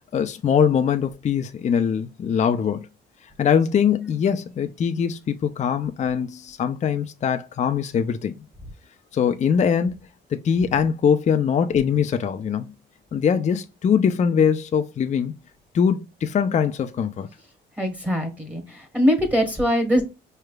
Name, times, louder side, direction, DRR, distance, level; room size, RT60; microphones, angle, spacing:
voice 1, 0.1-2.9 3.4-8.3 9.1-10.0 10.3-12.7 13.1-15.3 15.7-17.3, left 7 dB, 35° left, 0.4 m, -22 dB
voice 2, 17.8-20.0, equal, 5° right, 1.2 m, -22 dB
4.7 x 3.2 x 2.2 m
cardioid pair, 90°, 20 cm